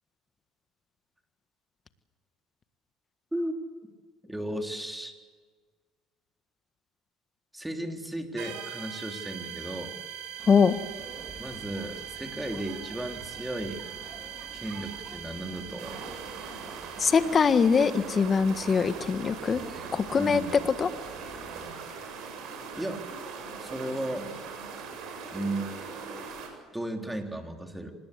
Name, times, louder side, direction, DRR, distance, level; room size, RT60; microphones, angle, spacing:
voice 1, 4.2-5.2 7.5-10.0 11.4-13.8 14.5-16.2 20.2-20.5 22.7-23.0 23.6-24.3 25.3-26.3 26.7-28.0, right 1 dB, 5° right, 3 dB, 3.5 m, -35 dB
sound 1, 8.4-17.7, right 9 dB, 90° right, 7.7 m, -42 dB
sound 2, 10.4-21.7, right 3 dB, 35° right, 5.1 m, -48 dB
voice 2, 10.5-10.8 17.0-19.6 19.9-20.4 20.8-20.9, left 5 dB, 35° left, 10 dB, 1.7 m, -22 dB
sound 3, 15.8-26.5, right 5 dB, 70° right, 7.3 m, -40 dB
26.0 x 20.5 x 8.4 m, 1.5 s
supercardioid pair, 95°, 0 cm